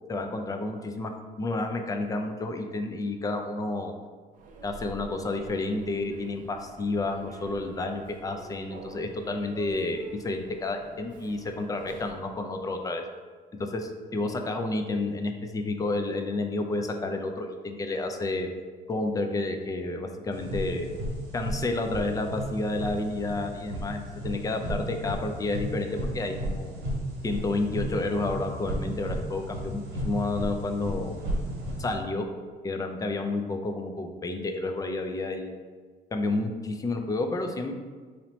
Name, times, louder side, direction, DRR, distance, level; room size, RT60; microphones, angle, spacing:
voice 1, 0.1-3.9 4.6-13.0 13.6-18.5 18.9-20.9 21.3-26.7 27.2-31.1 31.8-32.3 32.6-35.5 36.1-37.7, left 2 dB, 20° left, 5 dB, 0.4 m, -30 dB
Human voice / Subway metro underground, 4.3-12.3, right 3 dB, 50° right, 0.5 m, -47 dB
sound 1, 20.3-31.9, equal, 80° right, 1.1 m, -34 dB
3.1 x 2.7 x 4.2 m, 1.5 s
cardioid pair, 110°, 17 cm